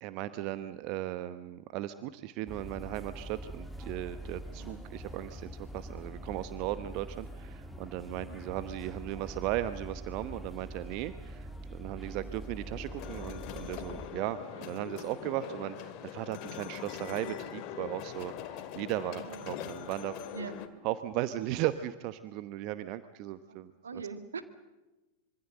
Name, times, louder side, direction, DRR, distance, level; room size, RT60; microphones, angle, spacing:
voice 1, 0.0-20.2 20.8-23.7, right 14 dB, 45° right, 13 dB, 1.0 m, -37 dB
sound 1, 2.5-14.1, right 1 dB, ahead, 1.9 m, -44 dB
voice 2, 4.5-4.9 8.1-8.4 12.1-12.4 14.5-14.7 19.1-19.6 20.3-20.6 23.5-24.4, right 5 dB, 70° right, 10 dB, 2.0 m, -44 dB
sound 2, 12.4-20.7, left 9 dB, 40° left, 2.2 m, -42 dB
25.5 x 24.5 x 7.8 m, 1.1 s
figure-of-eight pair, 90°, 0 cm